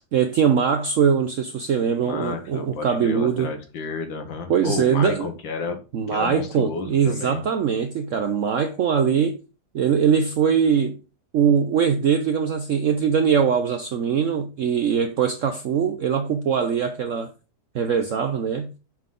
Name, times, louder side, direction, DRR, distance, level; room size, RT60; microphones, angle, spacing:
voice 1, 0.1-3.5 4.5-5.3 5.9-9.4 9.7-11.0 11.3-17.3 17.7-18.7, right 7 dB, 70° right, 0.7 m, -22 dB
voice 2, 2.0-5.8 6.1-7.4, left 4 dB, 85° left, 2.0 m, -31 dB
6.0 x 5.6 x 3.6 m
omnidirectional pair, 2.0 m